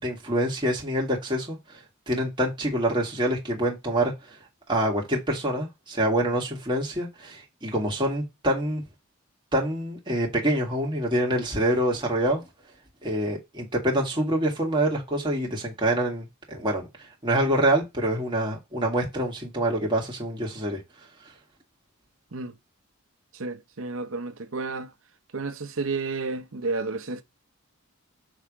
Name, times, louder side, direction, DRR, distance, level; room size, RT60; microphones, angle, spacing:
voice 1, 0.0-1.8 2.1-4.4 4.7-8.8 9.5-12.4 13.0-16.9 17.2-20.8, right 1 dB, 20° right, 2.1 m, -26 dB
voice 2, 23.3-24.9 25.3-27.2, right 3 dB, 65° right, 0.9 m, -31 dB
6.5 x 3.7 x 5.0 m
head